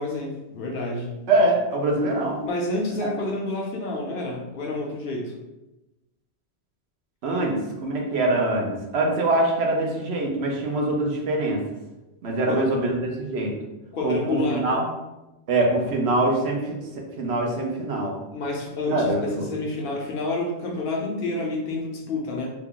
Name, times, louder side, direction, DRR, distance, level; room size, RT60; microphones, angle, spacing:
voice 1, 0.0-1.1 2.4-5.3 7.4-7.6 12.5-12.6 13.9-14.9 18.3-22.5, left 2 dB, 60° left, 0 dB, 0.7 m, -29 dB
voice 2, 1.3-2.4 7.2-7.5 7.8-11.6 12.2-13.5 14.0-14.8 15.5-16.8 17.2-18.1 18.9-19.5, right 2 dB, 70° right, 0 dB, 0.9 m, -23 dB
2.8 x 2.3 x 3.6 m, 1.0 s
omnidirectional pair, 1.2 m